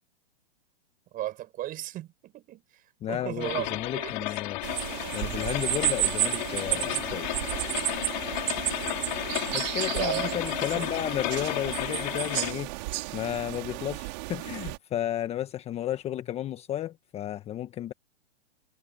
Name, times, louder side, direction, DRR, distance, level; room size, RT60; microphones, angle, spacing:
voice 1, 1.1-2.6 3.1-4.3 10.0-10.9, right 14 dB, 25° right, 6.8 m, -35 dB
voice 2, 3.0-4.6 5.1-7.4 9.5-12.7 13.1-17.9, left 12 dB, 20° left, 1.3 m, -33 dB
sound 1, 3.4-12.5, left 20 dB, 45° left, 4.2 m, -33 dB
sound 2, 4.6-14.8, right 25 dB, 40° right, 3.1 m, -32 dB
hypercardioid pair, 135°, 33 cm